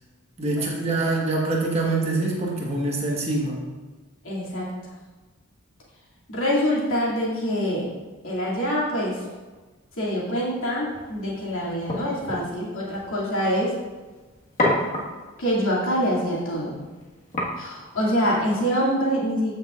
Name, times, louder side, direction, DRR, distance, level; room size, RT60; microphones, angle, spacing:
voice 1, 0.4-3.6, right 2 dB, 30° right, -3 dB, 1.4 m, -25 dB
voice 2, 4.2-4.7 6.3-7.9 8.2-9.2 10.0-13.7 15.4-16.8 17.6-19.5, equal, 65° left, -6 dB, 2.5 m, -25 dB
sound 1, 10.9-18.6, left 1 dB, 35° left, 1.6 m, -32 dB
14.5 x 6.2 x 2.5 m, 1.3 s
head